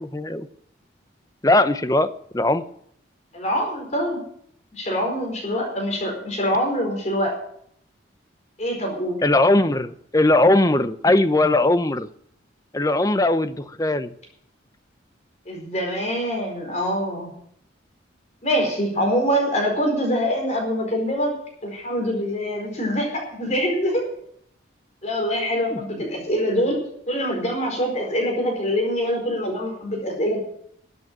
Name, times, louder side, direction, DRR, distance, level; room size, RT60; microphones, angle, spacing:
voice 1, 0.1-0.5 1.4-2.6 9.2-12.1 12.7-14.1 25.7-25.8, left 2 dB, 20° left, 12 dB, 0.7 m, -19 dB
voice 2, 3.3-4.2 4.7-7.4 8.6-9.2 15.5-17.3 18.4-21.3 21.6-24.1 25.0-26.8 27.1-30.4, equal, 35° left, 1 dB, 4.6 m, -24 dB
14.0 x 8.4 x 8.9 m, 0.68 s
head